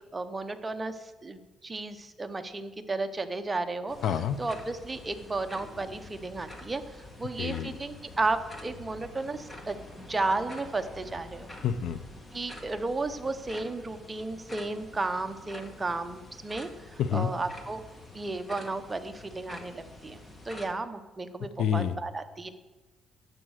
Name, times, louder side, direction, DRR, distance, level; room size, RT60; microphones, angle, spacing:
voice 1, 0.1-4.0 4.4-11.5 12.3-17.8 18.1-20.2 20.4-22.5, right 3 dB, 15° right, 8 dB, 0.8 m, -33 dB
sound 1, 3.9-20.7, left 1 dB, 20° left, 1.6 m, -47 dB
voice 2, 4.0-4.4 7.4-7.8 11.6-12.0 17.0-17.3 21.6-21.9, left 9 dB, 65° left, 13 dB, 0.7 m, -28 dB
11.5 x 8.0 x 6.4 m, 1.2 s
cardioid pair, 125°, 0 cm